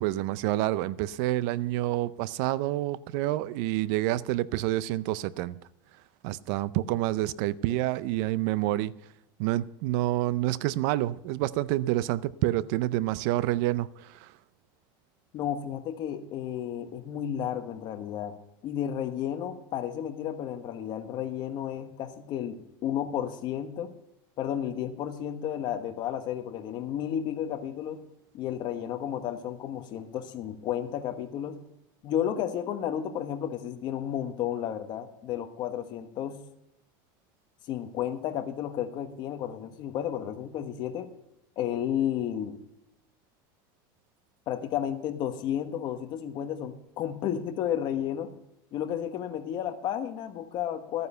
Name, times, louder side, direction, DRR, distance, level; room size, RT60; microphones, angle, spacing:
voice 1, 0.0-5.6 6.2-8.9 9.4-14.3, right 15 dB, 60° right, 0.5 m, -28 dB
voice 2, 15.3-18.4 18.6-23.9 24.4-28.0 28.3-31.6 32.0-36.4 37.7-41.1 41.6-42.6 44.5-48.3 48.7-51.1, left 10 dB, 40° left, 1.3 m, -32 dB
14.0 x 9.4 x 5.6 m
supercardioid pair, 155°, 11 cm